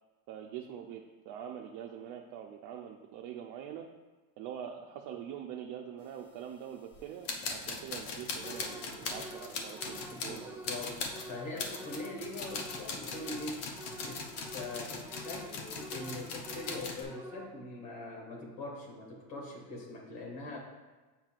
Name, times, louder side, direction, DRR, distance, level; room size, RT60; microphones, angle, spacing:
voice 1, 0.3-3.9 4.4-10.9, right 9 dB, 65° right, 0 dB, 0.7 m, -44 dB
sound 1, 6.9-7.0 7.2-17.0, left 4 dB, 60° left, 1.0 m, -40 dB
sound 2, 8.4-17.8, right 1 dB, 5° right, 0.4 m, -49 dB
voice 2, 10.1-13.7 14.0-14.3 14.5-20.6, left 2 dB, 80° left, -2 dB, 1.9 m, -42 dB
7.4 x 5.5 x 2.4 m, 1.3 s
supercardioid pair, 115°, 45 cm